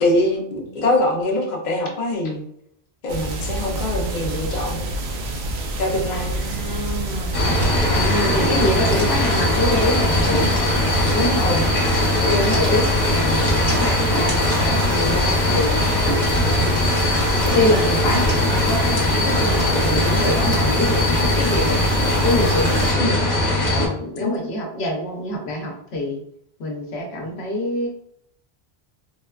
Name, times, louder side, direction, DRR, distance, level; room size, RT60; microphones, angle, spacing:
voice 1, 0.0-2.5 3.0-4.9 5.8-6.4 11.4-11.6 23.0-23.2 24.2-24.3, left 1 dB, 50° left, 0 dB, 0.7 m, -23 dB
sound 1, 3.1-22.9, right 1 dB, 75° right, 0.8 m, -27 dB
voice 2, 6.1-7.3 7.9-10.5 11.1-11.6 12.2-15.8 17.5-21.7 22.2-23.1 23.7-26.2 26.6-27.9, left 1 dB, 75° left, 1 dB, 0.9 m, -25 dB
sound 2, 7.3-23.9, left 1 dB, 30° left, 1.1 m, -20 dB
4.0 x 2.2 x 2.3 m, 0.70 s
omnidirectional pair, 1.1 m